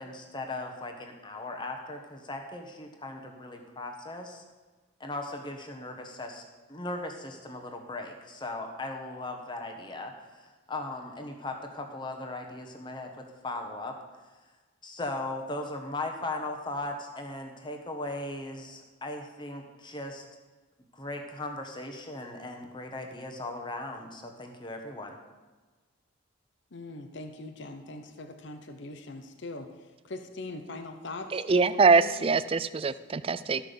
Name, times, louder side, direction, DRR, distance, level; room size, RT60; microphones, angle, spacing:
voice 1, 0.0-4.4 5.0-6.4 6.7-14.0 14.8-20.2 20.9-25.2, left 2 dB, 20° left, 3 dB, 1.3 m, -38 dB
voice 2, 26.7-29.7 30.0-32.2, left 2 dB, 60° left, 6 dB, 0.8 m, -41 dB
voice 3, 31.3-33.6, right 4 dB, 25° right, 15 dB, 0.3 m, -23 dB
13.5 x 5.9 x 6.8 m, 1.3 s
head